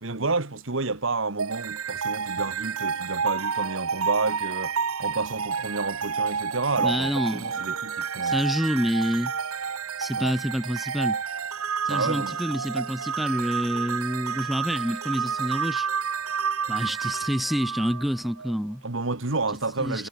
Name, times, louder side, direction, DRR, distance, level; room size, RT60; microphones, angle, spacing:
voice 1, 0.0-4.7 5.0-8.4 10.2-10.3 11.9-12.3 18.8-20.1, right 3 dB, 60° right, 1.5 m, -30 dB
sound 1, 1.4-18.5, right 6 dB, 90° right, 1.2 m, -30 dB
voice 2, 6.8-7.5 8.2-9.3 10.0-11.2 11.8-15.9 16.7-18.8 19.8-20.1, equal, ahead, 1.1 m, -27 dB
head